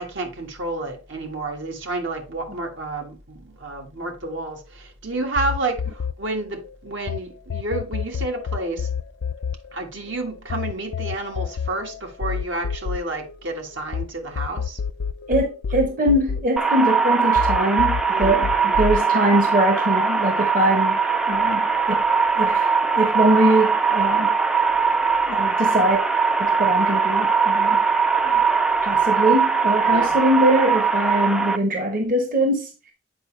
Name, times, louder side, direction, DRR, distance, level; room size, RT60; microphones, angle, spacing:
voice 1, 0.0-8.9 9.7-14.8 18.1-18.8 29.9-30.2, right 2 dB, 75° right, 1.6 m, -30 dB
sound 1, 5.4-7.2 7.5-14.0 14.4-17.0 17.4-19.0, left 6 dB, 75° left, 0.4 m, -28 dB
voice 2, 15.3-21.0 21.3-22.0 22.3-22.7 22.9-24.3 25.3-26.0 26.4-27.8 28.2-28.3 28.8-32.7, right 1 dB, 45° right, 1.0 m, -22 dB
sound 2, 16.6-31.6, right 5 dB, 5° right, 0.3 m, -20 dB
8.1 x 5.0 x 3.2 m
head